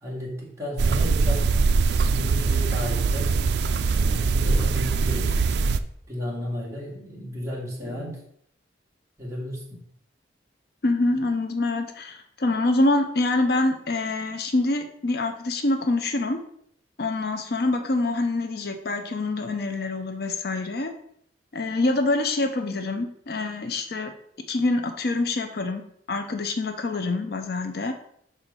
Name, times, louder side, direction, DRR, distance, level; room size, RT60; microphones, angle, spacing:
voice 1, 0.0-1.5 2.2-3.3 3.9-5.4 6.1-8.2 9.2-9.8, equal, 15° right, -5 dB, 2.3 m, -33 dB
sound 1, 0.8-5.8, right 4 dB, 65° right, 0.4 m, -22 dB
voice 2, 10.8-16.4 17.0-20.9 21.5-24.1 24.5-25.8 26.1-27.9, left 2 dB, 60° left, 6 dB, 0.6 m, -25 dB
5.8 x 4.4 x 5.3 m, 0.70 s
head